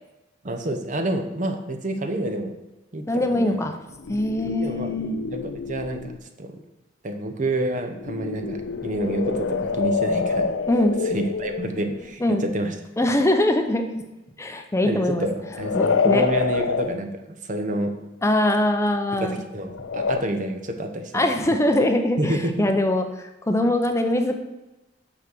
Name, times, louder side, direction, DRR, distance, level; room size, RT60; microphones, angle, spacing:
voice 1, 0.4-2.6 2.9-3.6 4.6-4.9 5.3-6.1 6.4-6.6 7.0-10.5 11.0-12.7 14.8-18.0 19.1-21.2 22.2-22.7, right 1 dB, 45° right, 5 dB, 0.8 m, -28 dB
voice 2, 3.1-3.8 4.1-5.1 10.7-11.0 12.2-12.5 13.0-14.0 14.4-15.3 15.7-16.2 18.2-19.4 21.1-24.4, left 1 dB, 15° left, 6 dB, 0.6 m, -22 dB
sound 1, 3.9-6.2 7.9-12.1 15.4-17.0 19.7-20.2, left 5 dB, 90° left, 0.4 m, -27 dB
6.3 x 6.0 x 6.1 m, 1.0 s
head